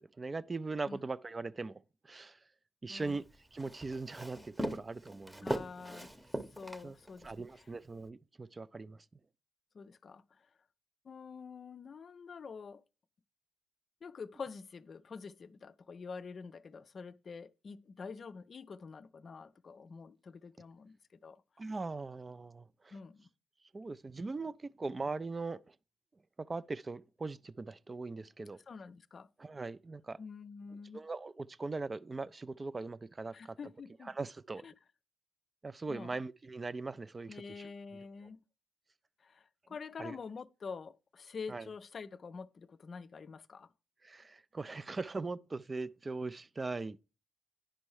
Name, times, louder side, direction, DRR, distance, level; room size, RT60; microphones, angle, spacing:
voice 1, 0.2-1.8 2.0-2.4 2.8-3.2 3.5-5.6 6.8-6.9 7.2-9.0 21.6-23.0 23.7-25.6 26.5-28.6 29.4-30.2 30.9-33.6 34.0-34.7 35.6-37.7 40.0-40.2 41.5-41.7 44.0-47.0, right 3 dB, 35° right, 0.3 m, -40 dB
voice 2, 2.9-3.2 5.4-6.1 6.6-7.7 9.7-10.2 11.1-12.8 14.0-21.0 21.2-21.4 22.9-23.3 28.7-29.3 30.2-31.0 33.3-34.1 34.6-34.7 35.9-36.2 37.3-38.4 39.2-43.7, left 5 dB, 50° left, 0.4 m, -47 dB
Walk footsteps, 3.0-7.4, right 1 dB, 15° right, 0.8 m, -40 dB
10.0 x 5.2 x 3.1 m
hypercardioid pair, 40°, 0 cm